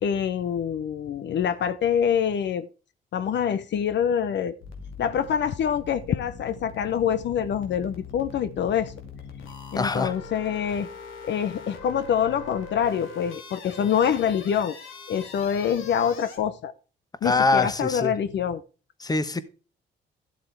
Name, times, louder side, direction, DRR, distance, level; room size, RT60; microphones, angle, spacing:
voice 1, 0.0-2.7 3.1-4.5 5.0-8.9 9.7-10.9 11.2-14.7 15.1-16.7 17.2-18.6, left 8 dB, 65° left, 0.8 m, -25 dB
sound 1, 4.6-16.4, left 5 dB, 85° left, 2.3 m, -42 dB
voice 2, 9.8-10.1 17.2-18.1 19.0-19.4, left 3 dB, 20° left, 1.1 m, -23 dB
13.0 x 7.5 x 3.4 m
cardioid pair, 90°, 20 cm